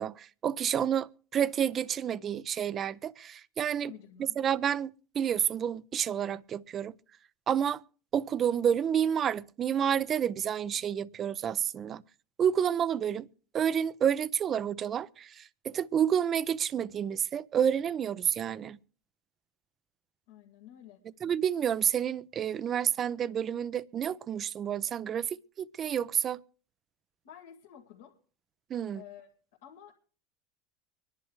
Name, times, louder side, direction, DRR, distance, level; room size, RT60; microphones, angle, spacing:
voice 1, 0.0-3.9 4.4-6.9 7.5-7.8 8.1-12.0 12.4-13.3 13.5-18.8 21.2-25.3 25.6-26.4 28.7-29.0, right 8 dB, 40° right, 0.6 m, -29 dB
voice 2, 3.8-4.4 20.3-21.0 27.2-28.1 28.9-29.3 29.6-29.9, left 10 dB, 80° left, 2.0 m, -50 dB
24.5 x 11.0 x 3.2 m
hypercardioid pair, 85°, 0 cm